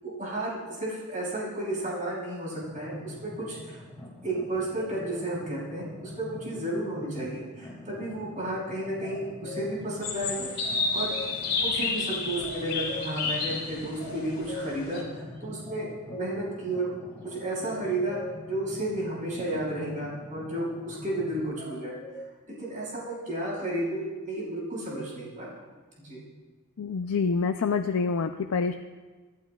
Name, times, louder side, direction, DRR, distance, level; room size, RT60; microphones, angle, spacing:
voice 1, 0.0-3.8 4.2-11.1 11.6-16.9 17.2-18.2 18.5-21.9 22.6-25.6 26.0-26.2, right 1 dB, 40° right, -5 dB, 5.2 m, -32 dB
sound 1, 2.6-21.4, left 1 dB, 15° left, 2.3 m, -46 dB
sound 2, 9.0-9.7 10.6-11.3 12.4-13.2 14.0-14.7 15.6-16.3 17.6-18.3 21.6-22.2, left 2 dB, 90° right, 3.0 m, -40 dB
sound 3, 10.0-15.0, left 4 dB, 50° left, 3.2 m, -30 dB
voice 2, 26.8-28.7, left 5 dB, 85° left, 6 dB, 0.5 m, -27 dB
26.5 x 11.5 x 2.4 m, 1.3 s
head